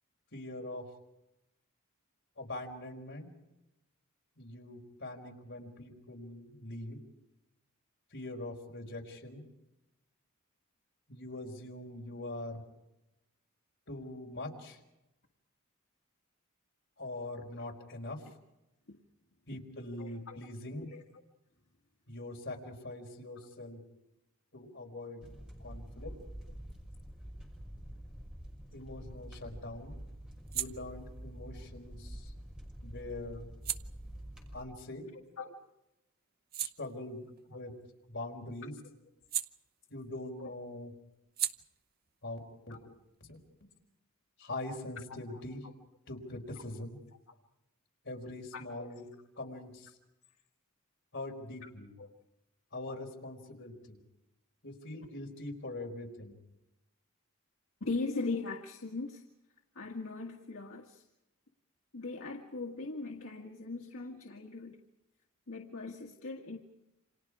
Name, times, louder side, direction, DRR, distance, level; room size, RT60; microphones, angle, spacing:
voice 1, 0.3-0.9 2.4-3.3 4.4-7.0 8.1-9.4 11.1-12.6 13.9-14.8 17.0-18.2 19.5-20.9 22.1-23.8 24.5-25.2 25.6-26.1 28.7-30.0 30.5-32.3 32.8-33.4 34.5-35.1 36.6-37.7 38.1-38.7 39.9-40.9 42.2-42.4 42.7-42.8 43.3-43.4 44.4-45.6 46.1-47.0 48.0-49.1 49.4-49.9 51.1-51.9 52.7-54.0 54.6-56.4, left 2 dB, 55° left, 1 dB, 4.7 m, -43 dB
voice 2, 20.0-20.4 20.8-21.0 35.4-35.5 37.5-37.6 40.4-40.5 42.7-43.0 45.1-45.2 48.5-48.9 49.4-49.5 51.6-51.7 52.0-52.1 57.8-59.2 59.8-61.1 61.9-64.8 65.5-66.6, left 3 dB, 75° left, 1 dB, 1.9 m, -40 dB
sound 1, 25.2-34.6, equal, 5° right, 6.0 m, -47 dB
sound 2, 28.7-35.6 36.0-40.3 40.5-43.9, right 10 dB, 45° right, 0.9 m, -44 dB
29.0 x 27.0 x 4.9 m, 0.92 s
head